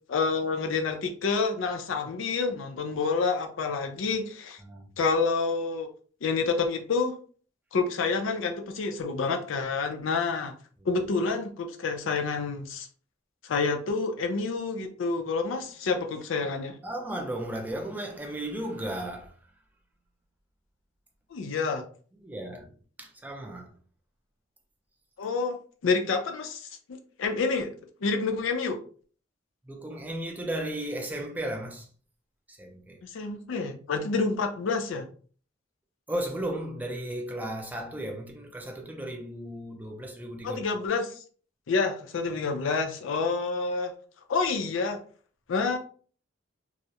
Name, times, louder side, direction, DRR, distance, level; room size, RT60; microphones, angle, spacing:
voice 1, 0.1-4.6 5.0-5.9 6.2-7.2 7.7-10.5 10.9-12.9 13.4-16.8 21.3-21.8 25.2-25.6 25.8-27.7 28.0-28.8 33.0-35.1 40.4-41.1 41.7-43.9 44.3-45.0 45.5-45.8, left 4 dB, 80° left, 0.4 m, -28 dB
voice 2, 16.8-19.3 22.2-22.7 23.0-23.7 29.7-31.9 32.5-33.0 36.1-40.6, right 1 dB, 10° right, 0.4 m, -35 dB
2.3 x 2.0 x 2.7 m
head